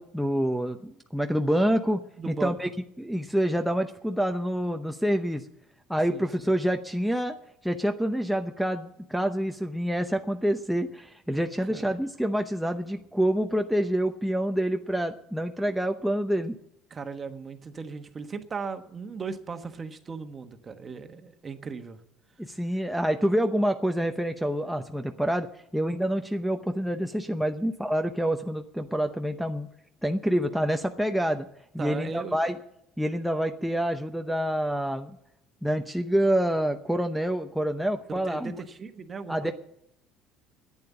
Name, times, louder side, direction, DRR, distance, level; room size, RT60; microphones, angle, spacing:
voice 1, 0.0-2.7 3.0-5.5 5.9-7.4 7.6-16.6 22.4-25.5 25.7-29.7 30.0-31.5 31.7-32.6 33.0-35.1 35.6-38.6 39.3-39.5, equal, ahead, 4 dB, 0.8 m, -27 dB
voice 2, 2.2-2.6 6.1-6.3 11.7-12.0 16.9-22.0 31.8-32.4 38.3-39.5, right 5 dB, 30° right, 8 dB, 1.3 m, -37 dB
10.5 x 8.8 x 9.6 m, 0.78 s
supercardioid pair, 100°, 0 cm